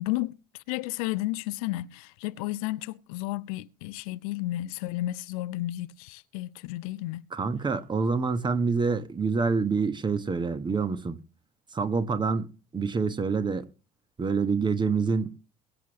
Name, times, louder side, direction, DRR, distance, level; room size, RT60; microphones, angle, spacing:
voice 1, 0.0-7.2, left 17 dB, 60° left, 0.6 m, -32 dB
voice 2, 7.3-11.2 11.7-13.7 14.2-15.3, right 4 dB, 20° right, 1.3 m, -27 dB
22.5 x 7.7 x 3.1 m
figure-of-eight pair, 60°, 21 cm